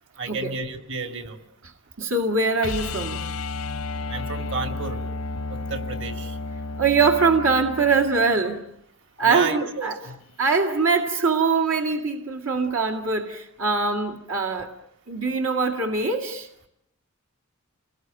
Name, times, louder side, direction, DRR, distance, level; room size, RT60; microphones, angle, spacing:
voice 1, 0.2-1.4 4.1-5.0 5.5-6.4 9.2-10.2, right 4 dB, 60° right, 6 dB, 2.6 m, -31 dB
voice 2, 2.0-3.3 6.8-8.6 9.2-10.0 10.4-14.7 15.1-16.5, right 4 dB, 75° right, 2 dB, 2.2 m, -23 dB
sound 1, 2.6-8.6 11.1-11.2, left 3 dB, 85° left, 0.9 m, -32 dB
29.5 x 20.5 x 9.1 m, 0.79 s
head